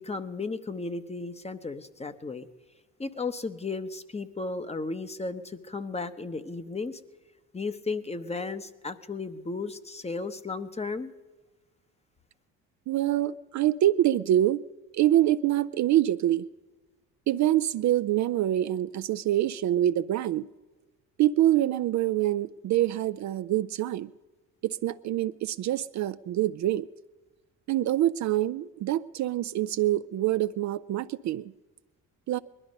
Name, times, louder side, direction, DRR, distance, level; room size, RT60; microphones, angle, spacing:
voice 1, 0.0-2.5 3.0-7.0 7.5-11.1, left 3 dB, 15° left, 11 dB, 0.9 m, -34 dB
voice 2, 12.9-14.6 14.9-16.4 17.3-20.5 21.2-24.1 24.6-26.9 27.7-31.5 32.3-32.4, right 13 dB, 50° right, 12 dB, 0.4 m, -25 dB
20.5 x 12.0 x 5.3 m, 1.2 s
supercardioid pair, 65°, 37 cm